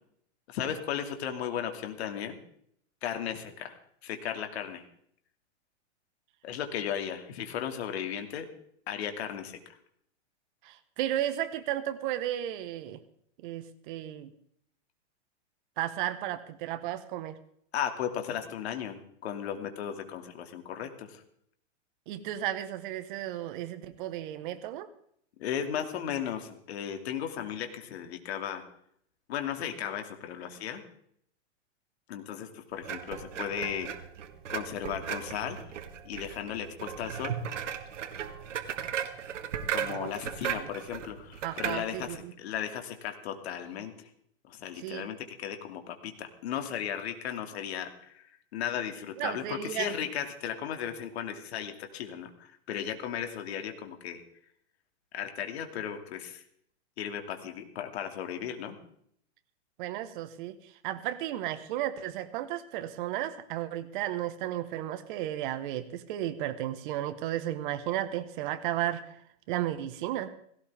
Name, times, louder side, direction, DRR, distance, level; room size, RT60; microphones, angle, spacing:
voice 1, 0.5-2.4 3.0-3.7 4.0-4.8 6.4-8.5 8.9-9.8 17.7-21.2 25.4-28.6 29.3-30.8 32.1-33.9 34.5-35.7 36.0-37.4 39.7-44.1 44.4-48.2 48.5-54.2 55.1-56.4 57.0-58.8, left 9 dB, 60° left, 6 dB, 2.5 m, -36 dB
voice 2, 10.6-13.0 13.4-14.3 15.8-17.4 22.1-24.9 39.8-40.1 40.4-40.7 41.4-42.3 44.8-45.1 49.2-49.9 59.8-69.2 69.5-70.3, right 12 dB, 45° right, 11 dB, 1.5 m, -34 dB
sound 1, 32.8-42.2, right 8 dB, 85° right, 1.9 m, -37 dB
17.5 x 17.0 x 3.6 m, 0.67 s
hypercardioid pair, 150°, 36 cm